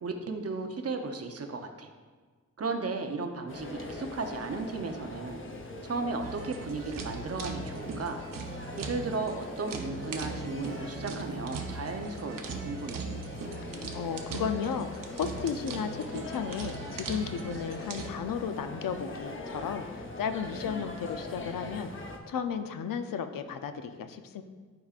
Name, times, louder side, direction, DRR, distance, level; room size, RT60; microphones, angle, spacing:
voice 1, 0.0-1.9 2.6-5.4 5.8-8.2 8.8-13.2, right 3 dB, 45° right, 5 dB, 0.7 m, -35 dB
sound 1, 3.5-22.2, left 2 dB, 40° left, 0.7 m, -42 dB
sound 2, 6.2-18.1, right 4 dB, 80° right, 0.7 m, -40 dB
voice 2, 13.6-24.4, left 7 dB, 85° left, 8 dB, 0.6 m, -34 dB
11.5 x 4.9 x 2.4 m, 1.5 s
wide cardioid pair, 140°, 32 cm